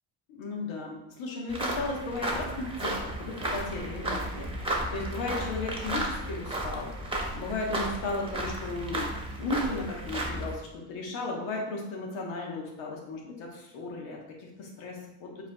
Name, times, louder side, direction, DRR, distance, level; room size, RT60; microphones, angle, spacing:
voice 1, 0.3-6.9 7.3-9.1 9.4-15.5, left 2 dB, 75° left, 0 dB, 1.3 m, -35 dB
sound 1, 1.5-10.5, right 1 dB, 10° right, 1.0 m, -33 dB
4.7 x 4.4 x 2.3 m, 0.88 s
supercardioid pair, 70°, 48 cm